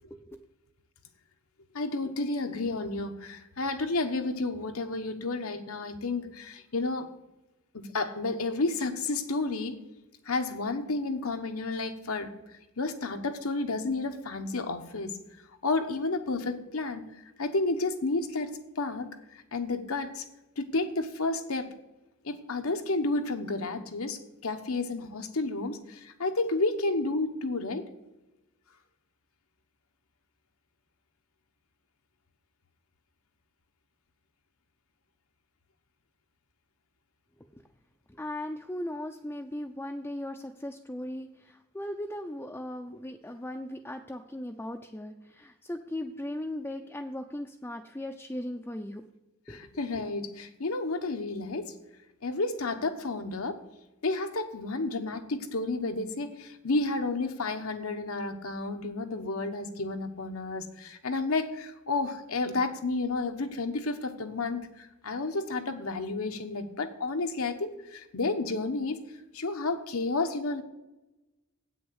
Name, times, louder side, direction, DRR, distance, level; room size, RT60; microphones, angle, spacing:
voice 1, 0.1-0.4 37.5-37.6 38.1-49.0 49.5-49.7, left 1 dB, 10° left, 3 dB, 0.4 m, -38 dB
voice 2, 1.7-7.1 7.7-9.7 10.3-12.3 12.8-15.1 15.6-17.0 17.4-20.2 20.6-21.7 22.2-27.9 49.5-51.7 52.2-53.6 54.0-69.0 69.3-70.6, left 3 dB, 85° left, 6 dB, 1.1 m, -31 dB
8.4 x 6.3 x 7.9 m, 1.0 s
head